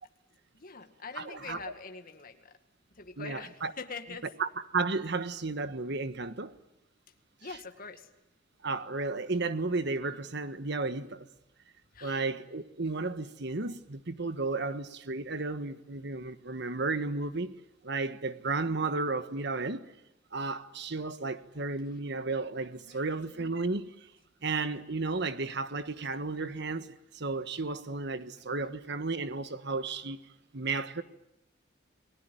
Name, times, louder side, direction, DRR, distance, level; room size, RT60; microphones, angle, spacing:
voice 1, 0.5-2.6 2.9-4.3 7.4-8.1 11.9-12.3 22.8-23.5, left 4 dB, 50° left, 2.0 m, -44 dB
voice 2, 1.2-1.6 3.2-3.7 4.4-6.5 8.6-11.3 12.0-17.5 17.8-19.9 20.3-23.9 24.4-30.2 30.5-31.0, right 3 dB, 65° right, 1.5 m, -33 dB
29.0 x 20.0 x 9.3 m
head